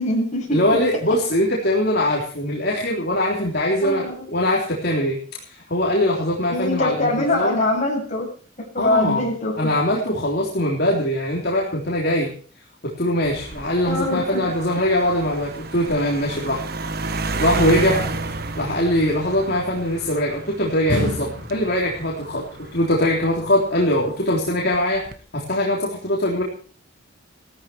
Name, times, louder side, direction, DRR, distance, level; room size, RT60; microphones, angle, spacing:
voice 1, 0.0-0.8 3.8-4.3 6.5-8.3 8.7-9.7 13.9-14.4, left 1 dB, 35° left, -1 dB, 7.3 m, -23 dB
voice 2, 0.5-5.2 5.4-7.6 8.8-9.2 9.6-12.3 12.8-16.6 17.4-18.0 18.6-25.0 25.3-26.4, left 1 dB, 50° left, -2 dB, 3.5 m, -22 dB
sound 1, 13.2-24.0 24.7-25.2, right 3 dB, 50° right, 1.4 m, -31 dB
sound 2, 17.9-19.6 20.9-22.4 22.7-22.8, left 1 dB, 85° right, 4.2 m, -31 dB
17.5 x 14.0 x 4.6 m, 0.43 s
head